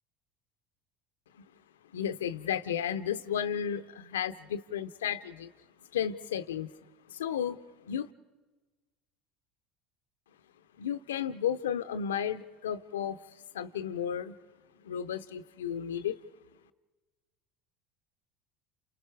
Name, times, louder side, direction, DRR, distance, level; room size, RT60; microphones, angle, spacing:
voice 1, 1.9-5.5 5.9-6.7 7.1-7.6 7.9-8.1 10.8-13.2 13.5-14.4 14.8-16.2, left 9 dB, 85° left, 12 dB, 0.7 m, -33 dB
29.5 x 28.5 x 4.7 m, 1.2 s
hypercardioid pair, 75°, 0 cm